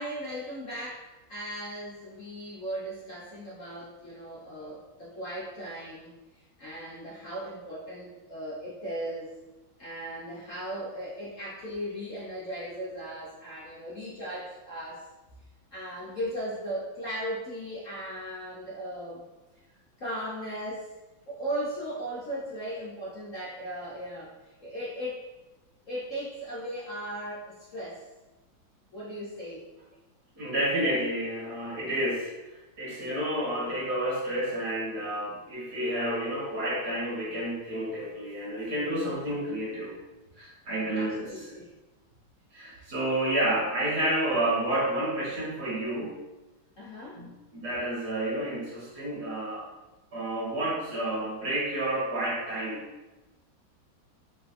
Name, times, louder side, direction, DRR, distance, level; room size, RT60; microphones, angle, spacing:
voice 1, 0.0-6.1 6.6-9.3 9.8-15.0 15.7-19.2 20.0-20.9 21.3-24.3 24.6-25.2 25.9-28.0 28.9-29.6 40.9-41.7 42.7-42.9 46.8-47.2, equal, 50° left, -8 dB, 1.1 m, -37 dB
voice 2, 30.4-32.3 32.8-39.9 40.4-41.3 42.5-46.2 47.1-49.7 50.1-52.9, right 1 dB, 55° right, -7 dB, 2.0 m, -30 dB
5.2 x 3.3 x 2.6 m, 1.1 s
omnidirectional pair, 2.1 m